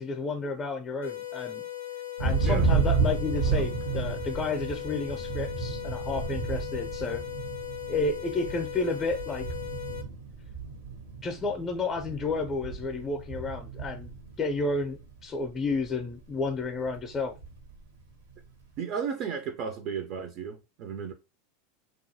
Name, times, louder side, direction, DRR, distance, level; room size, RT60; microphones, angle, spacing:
voice 1, 0.0-1.7 2.2-7.2 7.9-9.5 11.2-14.1 14.4-17.3, left 3 dB, 20° left, 0.5 m, -31 dB
sound 1, 1.0-10.0, left 12 dB, 85° left, 0.4 m, -38 dB
Thunder, 2.2-15.1 15.4-16.0 16.3-17.8, right 5 dB, 85° right, 0.8 m, -32 dB
voice 2, 18.8-21.1, right 6 dB, 50° right, 0.4 m, -34 dB
2.5 x 2.3 x 2.7 m
hypercardioid pair, 95°, 0 cm